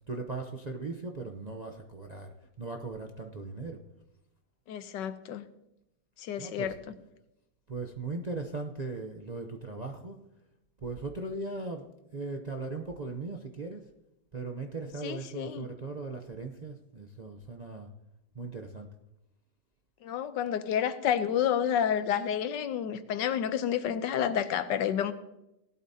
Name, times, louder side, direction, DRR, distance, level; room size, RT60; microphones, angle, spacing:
voice 1, 0.0-3.8 6.4-6.8 7.7-10.2 10.8-13.9 14.3-17.9 18.3-18.9, right 3 dB, 45° right, 2 dB, 0.5 m, -38 dB
voice 2, 4.7-5.5 6.2-6.7 15.0-15.7 20.0-25.1, left 9 dB, 90° left, 12 dB, 1.4 m, -30 dB
18.0 x 12.0 x 2.8 m, 0.87 s
omnidirectional pair, 1.9 m